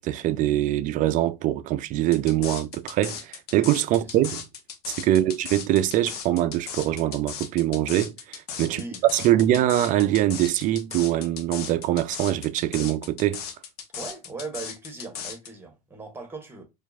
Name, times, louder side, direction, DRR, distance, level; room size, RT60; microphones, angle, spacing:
voice 1, 0.0-4.4 4.9-8.8 9.1-13.4, right 13 dB, 40° right, 0.4 m, -23 dB
sound 1, 2.1-15.5, left 7 dB, 80° left, 0.8 m, -37 dB
voice 2, 8.7-9.4 13.9-16.6, right 3 dB, 10° right, 1.3 m, -39 dB
4.4 x 2.5 x 2.4 m
hypercardioid pair, 90°, 19 cm